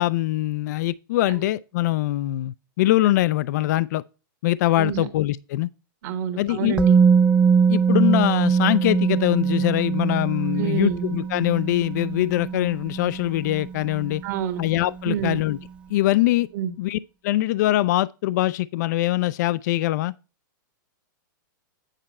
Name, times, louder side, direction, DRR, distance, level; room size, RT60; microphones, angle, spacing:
voice 1, 0.0-4.0 4.4-5.7 6.4-6.8 7.7-14.2 14.6-15.6 15.9-16.5 16.8-17.0 17.2-20.1, left 16 dB, 55° left, 0.4 m, -23 dB
voice 2, 6.0-7.0 10.6-11.0 14.2-14.6 15.0-15.4 16.5-16.7, right 9 dB, 55° right, 1.4 m, -27 dB
Musical instrument, 6.8-14.7 15.0-15.1, right 6 dB, 10° right, 0.5 m, -22 dB
9.0 x 5.2 x 4.2 m
hypercardioid pair, 135°, 11 cm